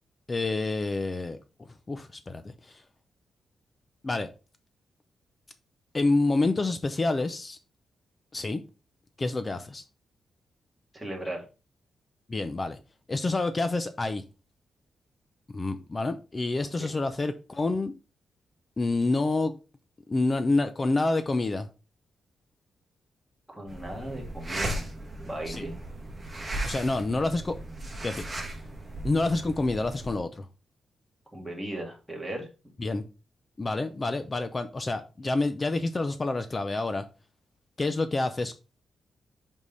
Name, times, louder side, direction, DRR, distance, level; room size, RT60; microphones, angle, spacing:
voice 1, 0.3-1.4 1.9-2.8 4.0-4.3 5.9-7.6 8.3-8.6 9.2-9.8 12.3-12.8 13.1-14.2 15.5-17.9 18.8-19.5 20.1-21.7 25.5-25.7 26.6-27.6 28.0-28.2 29.0-30.5 32.8-33.0 33.6-37.0 37.8-38.5, left 2 dB, 25° left, 0.5 m, -28 dB
voice 2, 10.9-11.4 16.8-16.9 23.5-24.9 25.2-25.7 31.3-32.5, right 1 dB, ahead, 2.1 m, -37 dB
sound 1, 23.7-30.2, right 1 dB, 20° right, 1.6 m, -36 dB
5.4 x 5.1 x 4.0 m
wide cardioid pair, 140°, 0 cm